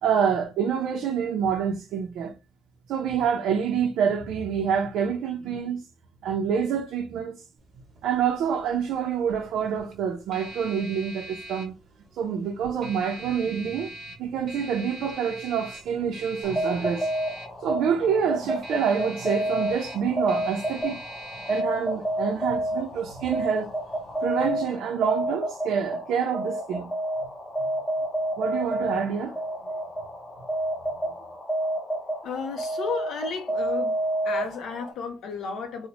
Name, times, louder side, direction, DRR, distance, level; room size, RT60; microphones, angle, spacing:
voice 1, 0.0-2.3 2.9-5.8 6.2-7.4 8.0-11.7 12.2-13.9 14.2-17.1 17.6-21.0 21.5-23.7 24.2-26.9 28.4-29.3, right 7 dB, 80° right, 0.5 m, -27 dB
sound 1, 7.6-24.4, right 1 dB, 40° right, 0.9 m, -44 dB
sound 2, 16.4-34.9, right 1 dB, 15° left, 0.5 m, -30 dB
voice 2, 32.2-34.0 34.2-35.9, left 5 dB, 65° left, 0.5 m, -33 dB
3.9 x 2.0 x 2.9 m
cardioid pair, 175°, 0 cm